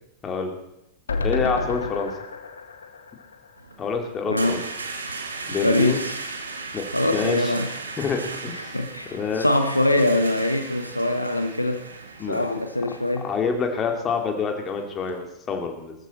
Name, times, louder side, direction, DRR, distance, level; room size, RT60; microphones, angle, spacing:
voice 1, 0.2-0.5 1.2-2.1 3.8-4.6 5.5-6.0 6.7-6.8 7.1-7.5 8.0-8.7 9.1-9.5 12.2-12.4 13.2-15.9, left 5 dB, 25° left, 4 dB, 2.6 m, -27 dB
sound 1, 1.1-4.3 4.7-4.8 5.0-5.1, left 3 dB, 70° left, 1.6 m, -31 dB
sound 2, 3.6-15.2, right 3 dB, 75° right, 1.7 m, -37 dB
voice 2, 4.3-4.6 5.6-6.2 6.9-7.7 8.5-11.9 12.3-13.3, left 1 dB, 85° left, 7 dB, 1.0 m, -23 dB
18.5 x 14.0 x 4.3 m, 0.85 s
figure-of-eight pair, 90°, 0 cm